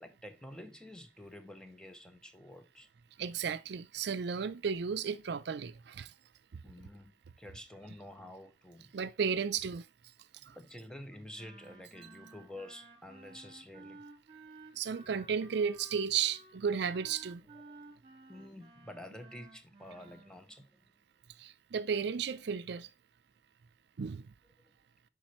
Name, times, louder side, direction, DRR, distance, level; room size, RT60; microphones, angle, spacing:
voice 1, 0.0-2.9 6.6-8.9 10.3-14.0 17.5-17.8 18.3-20.9, left 1 dB, 5° left, 0.6 m, -49 dB
voice 2, 3.2-6.1 8.9-9.9 10.5-10.6 14.8-17.4 21.4-22.9 24.0-24.2, right 6 dB, 65° right, 0.4 m, -34 dB
Wind instrument woodwind instrument, 11.3-20.4, right 3 dB, 30° right, 1.4 m, -55 dB
7.3 x 5.2 x 3.0 m
head